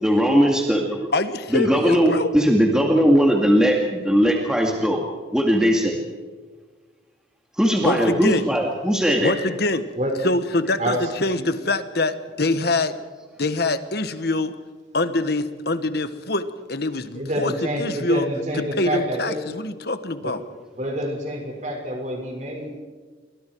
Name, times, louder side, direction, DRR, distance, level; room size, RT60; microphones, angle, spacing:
voice 1, 0.0-1.1 1.5-5.0 5.3-6.0 7.6-9.3, equal, 5° right, 0 dB, 2.2 m, -19 dB
voice 2, 1.1-2.3 7.8-8.5 9.2-9.9 10.2-12.9 13.4-14.5 14.9-17.5 17.8-18.3 18.8-20.4, left 2 dB, 55° left, 11 dB, 1.4 m, -24 dB
voice 3, 10.8-11.1 11.4-11.5 17.1-19.4 20.2-20.3 20.7-22.8, equal, 40° right, 2 dB, 5.7 m, -27 dB
29.5 x 23.5 x 4.7 m, 1.4 s
head